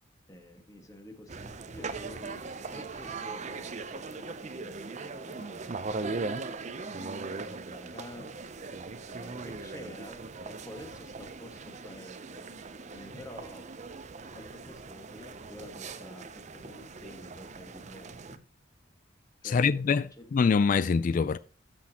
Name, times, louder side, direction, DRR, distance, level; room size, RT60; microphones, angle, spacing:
voice 1, 0.3-2.4 2.7-4.7 5.0-5.6 6.5-6.6 7.2-8.6 9.1-12.5 12.9-13.7 14.3-18.4 19.4-20.3, left 1 dB, 20° left, 1.6 m, -49 dB
sound 1, 1.3-18.4, right 3 dB, 40° right, 0.6 m, -40 dB
voice 2, 19.4-20.0 20.3-21.4, left 5 dB, 45° left, 0.3 m, -24 dB
13.0 x 6.1 x 2.9 m
head